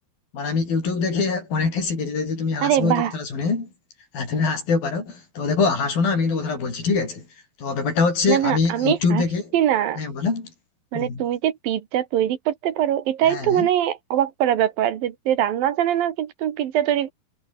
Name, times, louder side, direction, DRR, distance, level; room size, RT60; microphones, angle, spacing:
voice 1, 0.3-3.7 4.1-7.3 7.6-9.4 10.0-10.5 10.9-11.2 13.3-13.7, left 4 dB, 75° left, 8.6 m, -24 dB
voice 2, 2.6-3.1 8.3-9.2 9.5-10.0 10.9-17.1, right 11 dB, 80° right, 3.4 m, -22 dB
omnidirectional pair, 4.1 m